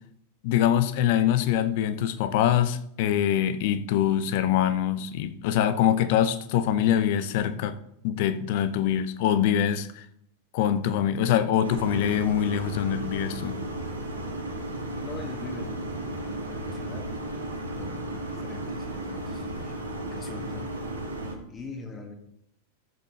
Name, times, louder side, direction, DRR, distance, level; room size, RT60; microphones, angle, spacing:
voice 1, 0.4-7.8 8.0-10.1 10.5-13.6, left 10 dB, 50° left, 0.7 m, -24 dB
sound 1, 11.6-21.3, right 1 dB, 80° right, 2.0 m, -34 dB
voice 2, 15.0-17.1 17.8-20.7 21.5-22.1, left 3 dB, 20° left, 1.9 m, -42 dB
14.0 x 7.5 x 3.3 m
figure-of-eight pair, 90°, 0 cm